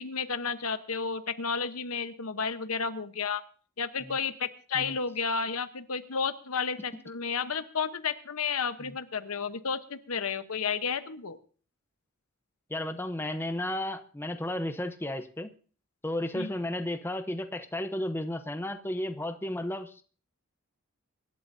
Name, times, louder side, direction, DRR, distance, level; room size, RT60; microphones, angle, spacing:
voice 1, 0.0-3.4 3.8-11.4 16.3-16.5, left 5 dB, 75° left, 10 dB, 1.0 m, -32 dB
voice 2, 12.7-15.5 16.0-20.0, left 1 dB, 10° left, 8 dB, 0.8 m, -33 dB
24.5 x 11.5 x 2.7 m, 0.41 s
head